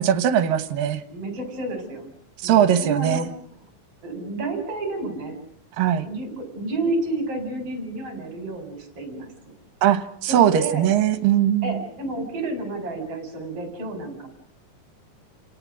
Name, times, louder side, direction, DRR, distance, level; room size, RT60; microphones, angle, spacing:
voice 1, 0.0-1.0 2.4-3.3 5.8-6.1 9.8-11.8, right 10 dB, 75° right, 11 dB, 2.8 m, -20 dB
voice 2, 1.1-2.1 2.4-3.3 4.0-5.4 5.9-9.3 10.3-10.8 11.6-14.3, right 2 dB, 40° right, 5 dB, 5.2 m, -30 dB
29.5 x 17.5 x 6.3 m, 0.70 s
omnidirectional pair, 4.1 m